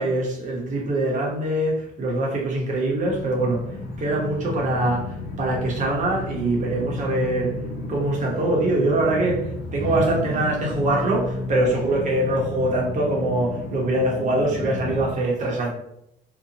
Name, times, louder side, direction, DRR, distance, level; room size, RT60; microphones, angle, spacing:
voice 1, 0.0-3.7 4.0-7.5 7.9-15.7, right 2 dB, 45° right, -2 dB, 0.9 m, -23 dB
sound 1, 3.0-15.1, left 2 dB, 60° left, 1.0 m, -32 dB
2.8 x 2.2 x 2.8 m, 0.78 s
cardioid pair, 110°, 17 cm